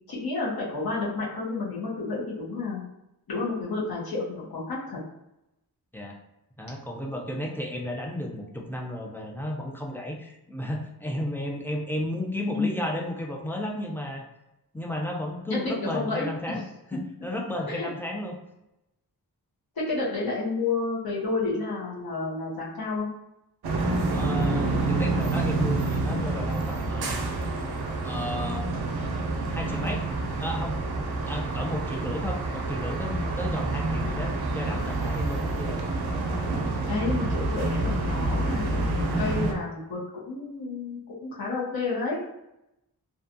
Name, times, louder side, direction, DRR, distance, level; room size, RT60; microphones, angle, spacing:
voice 1, 0.1-2.8 3.3-5.0 12.4-12.9 15.5-16.6 17.7-17.9 19.8-23.1 36.9-40.0 40.3-42.3, left 3 dB, 70° left, -6 dB, 0.9 m, -30 dB
voice 2, 6.6-14.3 14.7-16.6 16.9-18.4 24.1-27.2 28.0-28.7 29.5-30.0 30.4-30.8 31.3-35.8, left 1 dB, 5° left, 0 dB, 0.4 m, -33 dB
sound 1, 23.6-39.5, right 2 dB, 85° right, 0.5 m, -28 dB
2.6 x 2.3 x 2.6 m, 0.89 s
wide cardioid pair, 85°, 37 cm